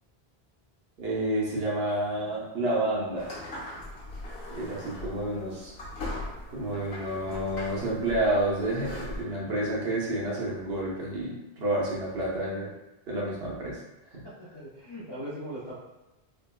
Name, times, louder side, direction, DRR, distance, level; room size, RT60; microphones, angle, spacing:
voice 1, 1.0-3.3 4.5-5.7 6.5-12.7 13.1-13.8 14.1-14.2, right 1 dB, 75° right, -5 dB, 1.0 m, -29 dB
sound 1, 3.2-9.2, left 1 dB, 75° left, 1.1 m, -40 dB
voice 2, 14.2-15.8, equal, 30° left, -9 dB, 0.5 m, -40 dB
3.2 x 2.1 x 2.2 m, 0.97 s
omnidirectional pair, 1.0 m